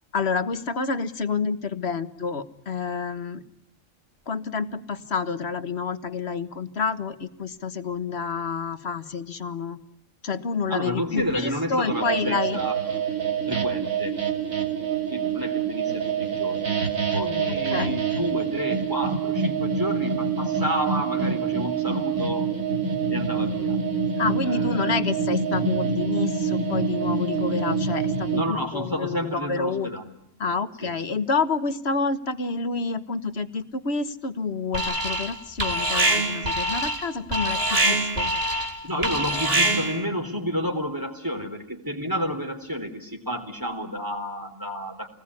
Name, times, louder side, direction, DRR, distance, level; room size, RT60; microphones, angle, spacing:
voice 1, 0.1-3.4 4.3-9.8 10.2-12.6 17.5-18.0 24.2-29.9 30.4-38.3, left 4 dB, 50° left, 11 dB, 1.6 m, -28 dB
voice 2, 10.7-12.8 13.5-14.2 15.1-16.8 17.1-22.5 23.1-23.8 24.4-24.9 28.3-30.1 30.8-30.9 38.8-45.1, equal, 15° right, 3 dB, 3.9 m, -30 dB
sound 1, 11.9-28.4, right 6 dB, 80° right, 3.1 m, -26 dB
Alarm, 34.7-35.3 35.6-40.0, right 1 dB, 45° right, 3.4 m, -24 dB
27.5 x 20.0 x 9.7 m, 0.86 s
omnidirectional pair, 1.4 m